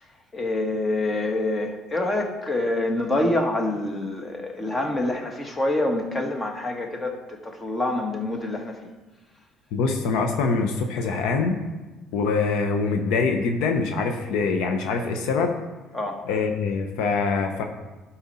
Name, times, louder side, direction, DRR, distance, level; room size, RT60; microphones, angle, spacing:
voice 1, 0.3-8.9 15.9-16.2, left 2 dB, 25° left, 4 dB, 1.4 m, -26 dB
voice 2, 9.7-11.6 12.1-15.6 16.3-17.6, left 4 dB, 75° left, 4 dB, 0.8 m, -24 dB
11.5 x 4.3 x 4.2 m, 1.2 s
supercardioid pair, 80°, 0 cm